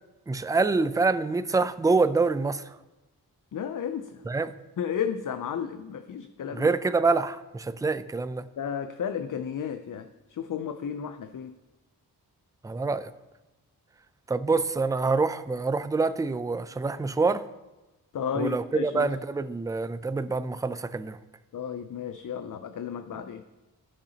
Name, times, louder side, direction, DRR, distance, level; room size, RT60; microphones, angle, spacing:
voice 1, 0.3-2.6 4.3-4.5 6.5-8.4 12.6-13.1 14.3-17.4 18.3-21.2, right 4 dB, 10° right, 0.3 m, -26 dB
voice 2, 3.5-4.2 4.8-6.7 8.6-11.5 18.1-19.1 21.5-23.4, left 7 dB, 55° left, 0.5 m, -33 dB
14.5 x 6.7 x 2.9 m
wide cardioid pair, 75°, 39 cm